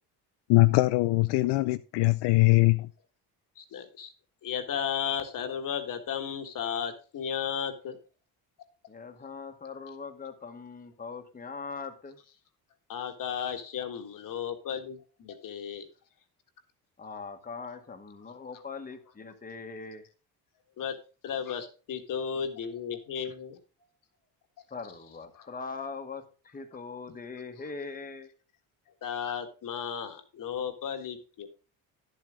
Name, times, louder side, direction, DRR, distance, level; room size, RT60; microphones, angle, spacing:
voice 1, 0.5-2.9, left 21 dB, 80° left, 0.5 m, -22 dB
voice 2, 3.6-4.1 4.4-8.0 12.9-15.9 20.8-21.0 21.2-23.6 25.4-25.5 29.0-31.5, left 8 dB, 55° left, 1.7 m, -34 dB
voice 3, 8.9-12.2 17.0-20.0 24.7-28.3, left 4 dB, 20° left, 1.4 m, -41 dB
11.0 x 7.7 x 3.7 m
cardioid pair, 115°, 39 cm